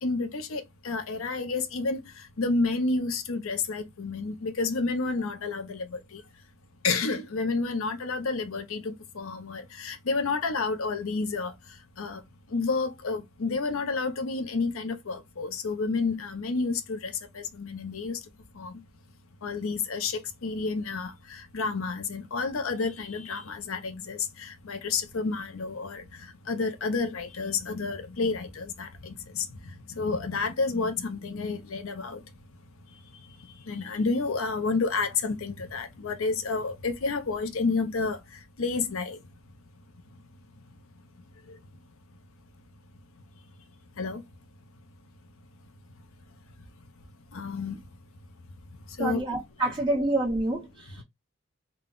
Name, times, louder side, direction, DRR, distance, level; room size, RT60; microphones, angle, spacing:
voice 1, 0.0-6.2 6.8-12.2 12.5-18.3 18.5-18.8 19.4-32.3 32.9-39.2 40.1-40.2 40.6-40.7 41.4-41.6 44.0-44.2 47.3-47.8 48.9-49.2, left 4 dB, 75° left, 0.6 m, -30 dB
voice 2, 49.0-51.0, right 2 dB, 20° right, 1.4 m, -28 dB
3.8 x 2.3 x 3.7 m
head